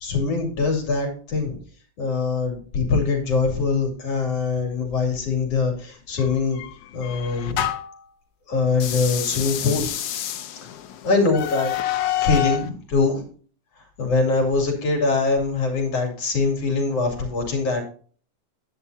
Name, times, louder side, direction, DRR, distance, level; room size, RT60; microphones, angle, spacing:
voice 1, 0.0-1.6 2.0-6.6 6.9-7.6 8.5-10.0 11.0-11.7 12.2-13.2 14.0-17.8, left 4 dB, 50° left, 2 dB, 3.6 m, -23 dB
sound 1, 6.2-8.0 8.7-12.7, left 12 dB, 75° left, 1.3 m, -28 dB
10.5 x 9.7 x 2.8 m, 0.41 s
omnidirectional pair, 3.7 m